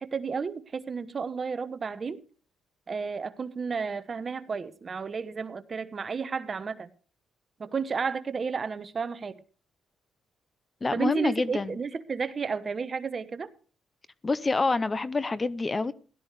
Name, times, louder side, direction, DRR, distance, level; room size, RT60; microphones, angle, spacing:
voice 1, 0.0-2.2 2.9-6.9 7.6-9.4 10.9-13.5, right 5 dB, 40° right, 1.0 m, -32 dB
voice 2, 10.8-11.8 14.2-15.9, left 3 dB, 25° left, 0.7 m, -27 dB
17.0 x 12.5 x 3.2 m
cardioid pair, 90°, 0 cm